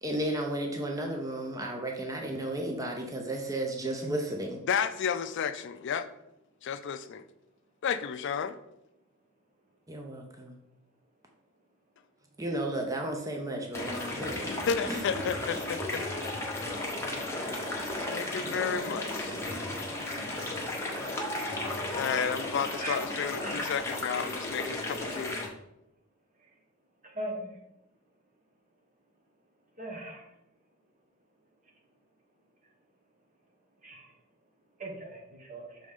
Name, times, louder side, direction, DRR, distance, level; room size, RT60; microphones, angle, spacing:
voice 1, 0.0-4.6 9.9-10.6 12.4-14.5 14.9-15.0, right 1 dB, 15° right, 2 dB, 0.6 m, -33 dB
voice 2, 4.7-6.1 6.6-7.2 7.8-8.6 14.5-16.0 16.3-16.5 18.1-19.4 21.9-25.4, left 7 dB, 60° left, 11 dB, 0.4 m, -32 dB
sound 1, 13.7-25.5, left 2 dB, 15° left, 1.0 m, -34 dB
voice 3, 27.0-27.6 29.8-30.2 33.8-34.1 34.8-35.8, right 1 dB, 40° right, 0 dB, 1.2 m, -39 dB
6.5 x 4.1 x 3.6 m, 0.84 s
head